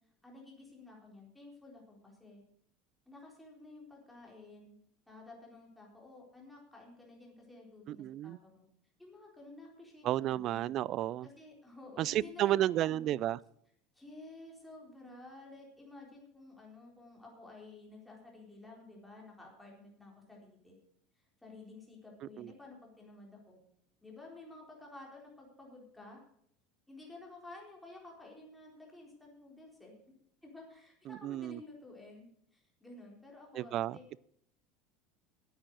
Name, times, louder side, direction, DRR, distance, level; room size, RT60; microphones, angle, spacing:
voice 1, 0.2-2.4 3.1-4.8 5.1-8.6 9.0-10.7 11.2-13.2 13.9-20.8 21.4-23.6 24.0-26.2 26.9-29.9 30.4-34.0, left 2 dB, 5° left, -2 dB, 4.1 m, -52 dB
voice 2, 7.9-8.4 10.0-11.3 12.0-13.4 22.4-22.5 31.1-31.6 33.6-34.0, right 13 dB, 45° right, 23 dB, 0.4 m, -32 dB
10.0 x 8.9 x 7.8 m, 0.70 s
supercardioid pair, 130°, 0 cm